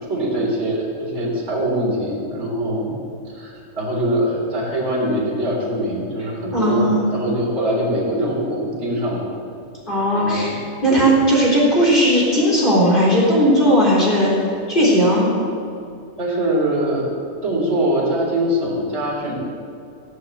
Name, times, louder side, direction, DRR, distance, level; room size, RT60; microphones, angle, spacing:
voice 1, 0.1-2.9 3.3-9.2 10.1-10.5 10.9-11.0 16.2-17.1 17.4-19.3, right 1 dB, 20° right, -4 dB, 3.6 m, -22 dB
voice 2, 6.5-7.0 9.9-14.3 14.7-15.3, equal, 15° left, -5 dB, 3.8 m, -16 dB
16.5 x 8.5 x 7.8 m, 2.5 s
omnidirectional pair, 3.7 m